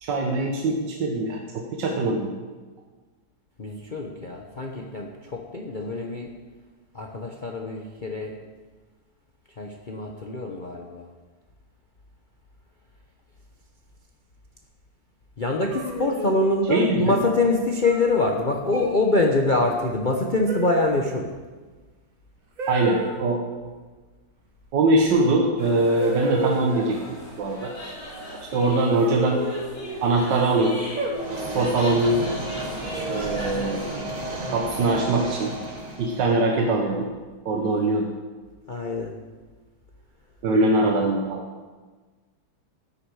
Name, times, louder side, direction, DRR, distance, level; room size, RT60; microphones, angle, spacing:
voice 1, 0.0-2.3 16.7-17.0 22.7-23.4 24.7-27.0 27.4-27.7 28.4-29.4 30.0-30.8 31.5-32.2 33.1-33.8 34.5-35.5 36.0-37.1 37.5-38.1 40.4-41.4, right 2 dB, 85° right, 1 dB, 1.8 m, -22 dB
voice 2, 3.6-6.3 6.9-8.3 9.6-11.1 15.4-21.4 38.7-39.1, left 2 dB, 35° left, 1 dB, 0.9 m, -24 dB
sound 1, 15.7-16.6 17.8-18.2 18.7-19.0 20.5-21.1 22.6-23.2 25.1-25.2 26.0-27.0 28.9-30.0 31.0-31.6 32.8-33.4, right 3 dB, 50° right, 1.9 m, -31 dB
sound 2, 25.6-34.0, equal, 80° left, 4.5 m, -39 dB
sound 3, 31.1-36.3, right 1 dB, 25° right, 1.5 m, -33 dB
14.0 x 9.9 x 4.9 m, 1.4 s
omnidirectional pair, 1.8 m